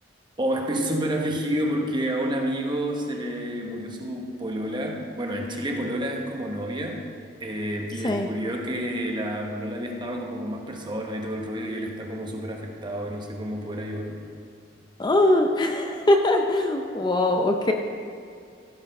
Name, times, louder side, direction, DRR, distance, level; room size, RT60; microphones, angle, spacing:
voice 1, 0.4-7.0 7.4-14.2, equal, 25° right, 1 dB, 1.1 m, -29 dB
voice 2, 15.0-17.7, left 1 dB, 25° left, 3 dB, 0.5 m, -21 dB
14.5 x 5.0 x 5.4 m, 2.3 s
head